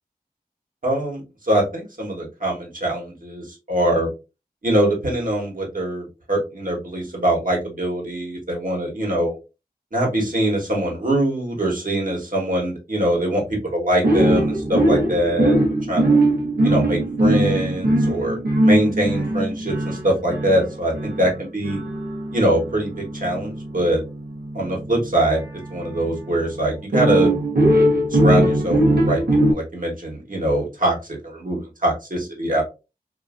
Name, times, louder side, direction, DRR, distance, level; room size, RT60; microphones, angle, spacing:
voice 1, 0.8-4.1 4.6-9.4 9.9-15.6 15.9-16.1 16.6-21.8 22.3-24.0 24.5-25.4 25.7-27.3 28.1-31.0 31.2-32.6, right 1 dB, 60° right, -2 dB, 1.3 m, -23 dB
sound 1, 14.0-26.2 26.9-29.5, right 1 dB, 85° right, 1.0 m, -20 dB
2.7 x 2.5 x 2.4 m, 0.28 s
wide cardioid pair, 40°, 16 cm